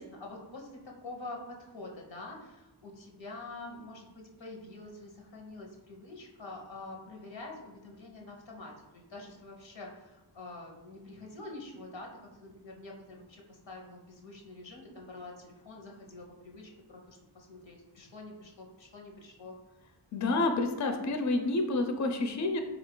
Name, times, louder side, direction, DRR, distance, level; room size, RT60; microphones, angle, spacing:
voice 1, 0.0-12.1 12.4-19.6, left 2 dB, 85° left, 0 dB, 0.8 m, -46 dB
voice 2, 20.1-22.6, left 2 dB, 40° left, 5 dB, 0.4 m, -29 dB
3.9 x 2.4 x 3.7 m, 1.1 s
wide cardioid pair, 40°, 44 cm